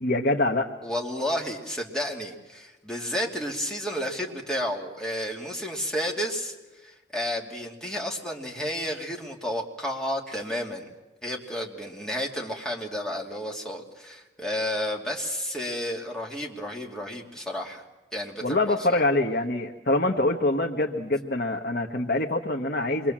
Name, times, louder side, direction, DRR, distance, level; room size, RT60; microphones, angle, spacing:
voice 1, 0.0-0.7 18.4-23.1, left 2 dB, 55° left, 1 dB, 1.4 m, -25 dB
voice 2, 0.8-6.5 6.8-10.8 11.2-17.8 18.1-19.0, equal, 5° left, -1 dB, 2.8 m, -31 dB
27.0 x 23.0 x 7.5 m, 1.1 s
head